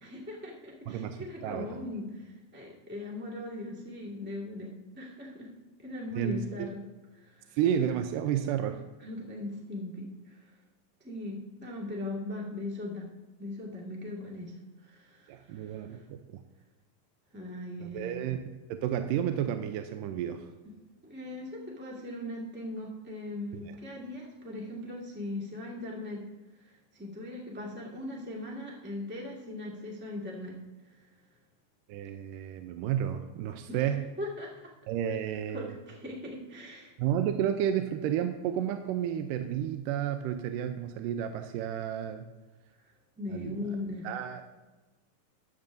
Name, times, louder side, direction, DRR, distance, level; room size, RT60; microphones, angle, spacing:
voice 1, 0.0-5.5 5.8-6.8 7.1-7.5 9.0-10.4 11.0-13.1 13.4-14.5 14.8-16.0 17.3-18.2 21.0-26.2 26.6-30.5 33.7-33.9 34.2-34.7 35.5-36.9 43.2-44.1, left 2 dB, 15° right, -3 dB, 0.4 m, -39 dB
voice 2, 0.9-1.2 1.4-1.9 6.2-6.7 7.5-8.8 15.3-16.2 17.8-18.5 18.8-20.5 23.5-23.6 31.9-34.1 34.9-35.7 37.0-42.2 43.3-43.6 44.0-44.4, right 9 dB, 80° right, 7 dB, 2.1 m, -31 dB
14.5 x 10.5 x 2.6 m, 1.2 s
omnidirectional pair, 4.1 m